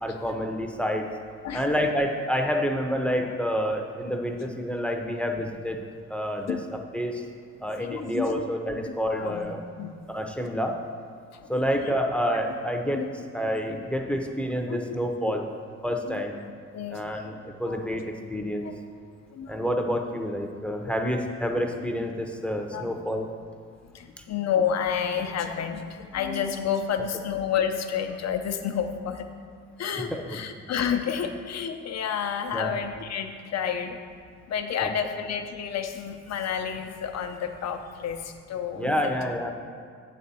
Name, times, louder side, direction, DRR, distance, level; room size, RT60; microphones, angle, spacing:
voice 1, 0.0-1.0 1.5-5.8 6.1-6.6 6.9-7.2 7.6-9.6 10.1-10.8 11.5-13.0 13.3-15.4 15.8-16.3 16.9-18.0 18.3-18.7 19.5-23.3 24.2-24.3 30.1-30.2 32.5-32.7 34.8-34.9 38.8-39.5, equal, 5° left, 2 dB, 0.7 m, -28 dB
voice 2, 7.8-8.3 8.8-8.9 9.2-9.9 11.3-11.6 12.9-13.1 14.7-14.8 15.3-15.4 16.0-16.2 16.7-17.0 17.7-17.8 18.6-18.7 19.3-19.6 20.9-21.0 22.7-22.9 23.9-29.3 29.8-34.0 34.5-39.1, left 7 dB, 60° left, 6 dB, 0.8 m, -30 dB
7.7 x 4.2 x 6.9 m, 2.1 s
cardioid pair, 90°, 30 cm